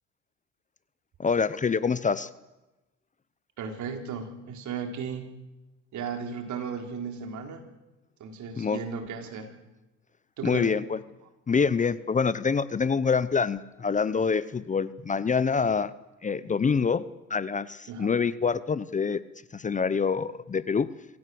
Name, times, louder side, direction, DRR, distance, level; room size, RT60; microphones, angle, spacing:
voice 1, 1.2-2.3 8.6-8.8 10.4-11.0 11.5-15.9 16.2-17.0 17.3-19.2 19.5-20.9, left 5 dB, 25° left, 16 dB, 0.8 m, -26 dB
voice 2, 3.6-5.3 5.9-7.6 8.2-9.5 10.4-10.8 17.9-18.1, right 6 dB, 65° right, 5 dB, 3.9 m, -35 dB
26.0 x 17.0 x 7.8 m, 1.0 s
cardioid pair, 115°, 32 cm